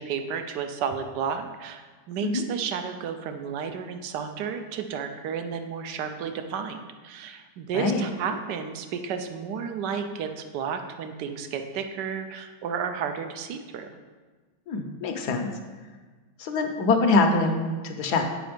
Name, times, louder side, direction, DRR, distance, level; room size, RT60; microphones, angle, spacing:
voice 1, 0.0-13.9, right 6 dB, 70° right, 7 dB, 1.2 m, -32 dB
voice 2, 14.7-15.5 16.4-18.3, left 3 dB, 65° left, 4 dB, 1.2 m, -24 dB
7.8 x 5.4 x 5.1 m, 1.4 s
omnidirectional pair, 2.1 m